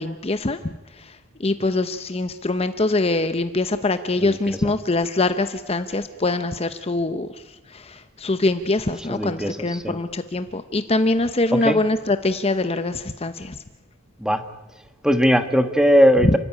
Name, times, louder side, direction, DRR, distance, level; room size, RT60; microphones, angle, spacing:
voice 1, 0.0-7.3 7.7-13.6, left 2 dB, 30° left, 10 dB, 0.8 m, -24 dB
voice 2, 4.2-4.7 9.0-10.0 11.5-11.8 14.2-14.4 15.0-16.4, equal, 5° right, 9 dB, 1.3 m, -19 dB
30.0 x 14.0 x 9.9 m, 1.1 s
head